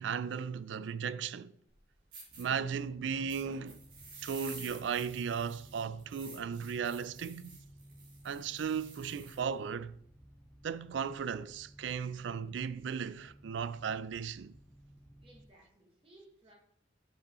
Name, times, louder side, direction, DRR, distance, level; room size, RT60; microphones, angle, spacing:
voice 1, 0.0-1.5 2.4-3.8 4.2-7.6 8.2-10.0 10.6-14.6, right 6 dB, 70° right, 0.4 m, -36 dB
sound 1, 1.7-1.8 2.1-2.4 3.3-9.4, right 3 dB, 50° right, 3.4 m, -51 dB
sound 2, 2.3-15.5, right 1 dB, 5° left, 1.1 m, -57 dB
voice 2, 15.2-16.5, right 1 dB, 30° right, 1.4 m, -60 dB
7.8 x 5.3 x 4.2 m
head